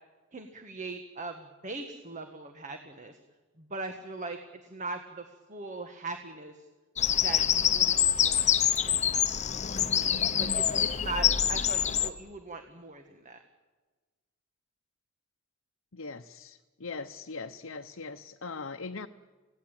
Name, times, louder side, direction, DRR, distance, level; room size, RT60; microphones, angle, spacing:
voice 1, 0.3-3.2 3.6-6.6 7.1-8.5 8.8-9.2 10.3-13.4, right 2 dB, 40° right, 6 dB, 1.5 m, -40 dB
Bird vocalization bird call bird song, 7.0-12.1, left 9 dB, 35° left, 0.9 m, -26 dB
voice 2, 15.9-19.1, left 4 dB, 70° left, 5 dB, 0.9 m, -40 dB
28.5 x 17.0 x 9.0 m, 1.3 s
head